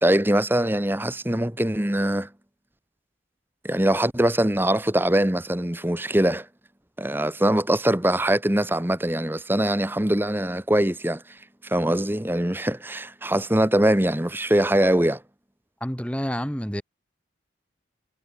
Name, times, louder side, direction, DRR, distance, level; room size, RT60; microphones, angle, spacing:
voice 1, 0.0-2.3 3.6-6.5 7.0-11.2 11.6-15.2, right 1 dB, 10° right, 1.1 m, -22 dB
voice 2, 15.8-16.8, equal, 5° left, 5.9 m, -28 dB
head